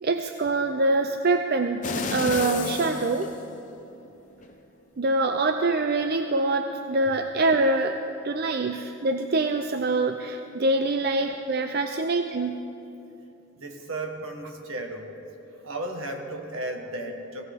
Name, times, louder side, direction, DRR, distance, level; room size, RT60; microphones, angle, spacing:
voice 1, 0.0-3.3 5.0-8.0 8.2-12.6, right 2 dB, 50° right, 6 dB, 0.5 m, -25 dB
sound 1, 1.8-4.0 4.4-4.5, left 4 dB, 35° left, 0.8 m, -31 dB
voice 2, 13.6-15.2 15.5-17.4, right 1 dB, 75° right, 3 dB, 1.6 m, -35 dB
18.0 x 16.5 x 3.7 m, 2.9 s
head